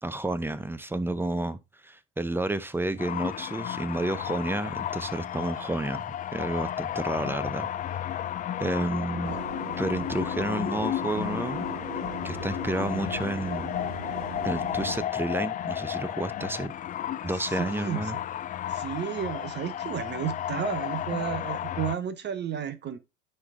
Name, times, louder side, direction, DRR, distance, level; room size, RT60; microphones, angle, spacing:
voice 1, 0.0-6.0 6.3-7.7 8.6-9.4 9.8-11.7 12.2-13.7 14.4-16.7 17.2-18.2, right 2 dB, 5° right, 0.7 m, -30 dB
sound 1, 3.0-22.0, left 11 dB, 25° left, 0.4 m, -33 dB
sound 2, 9.2-15.0, right 8 dB, 85° right, 1.0 m, -40 dB
voice 2, 17.4-18.2 18.7-23.0, right 9 dB, 35° right, 0.9 m, -33 dB
9.7 x 3.4 x 3.7 m
hypercardioid pair, 80°, 30 cm